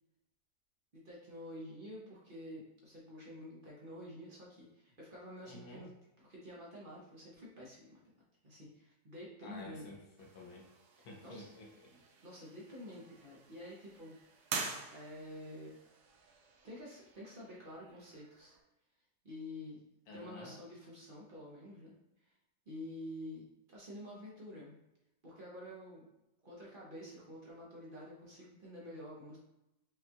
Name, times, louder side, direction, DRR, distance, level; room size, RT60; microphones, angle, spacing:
voice 1, 0.9-5.9 6.2-8.0 8.4-9.8 11.0-11.6 12.2-14.1 14.9-15.7 16.6-18.6 19.2-19.9 20.1-22.0 22.2-22.3 22.7-24.8 25.2-26.1 26.4-29.4, left 1 dB, 45° right, -5 dB, 0.7 m, -49 dB
voice 2, 5.5-5.9 9.4-10.7 11.0-12.0 20.1-20.6, left 2 dB, 70° left, -1 dB, 1.2 m, -51 dB
sound 1, 10.2-18.6, right 5 dB, 75° right, 1.1 m, -47 dB
5.1 x 2.3 x 2.8 m, 0.90 s
omnidirectional pair, 1.8 m